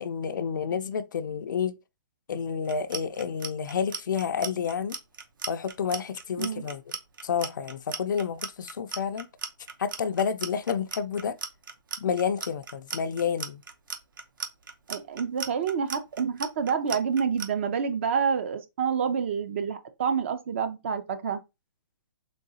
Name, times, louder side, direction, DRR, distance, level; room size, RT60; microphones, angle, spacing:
voice 1, 0.0-1.8 2.3-5.0 5.5-6.8 7.2-9.3 9.8-11.4 12.0-13.6, left 7 dB, 65° left, 0.4 m, -29 dB
Clock, 2.6-17.5, right 5 dB, 75° right, 0.9 m, -36 dB
voice 2, 14.9-21.4, right 6 dB, 35° right, 0.4 m, -28 dB
3.8 x 3.0 x 2.7 m
hypercardioid pair, 165°, 11 cm